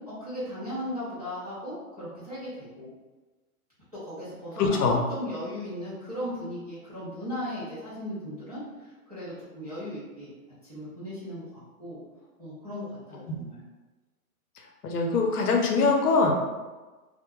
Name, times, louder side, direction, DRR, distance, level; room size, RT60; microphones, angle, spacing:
voice 1, 0.0-2.9 4.0-8.6 9.1-10.3 10.6-12.0 12.4-13.6, left 1 dB, 25° right, -13 dB, 0.5 m, -37 dB
voice 2, 4.6-5.0 14.8-16.3, left 4 dB, 75° left, 1 dB, 0.7 m, -23 dB
2.2 x 2.1 x 3.0 m, 1.2 s
hypercardioid pair, 180°, 46 cm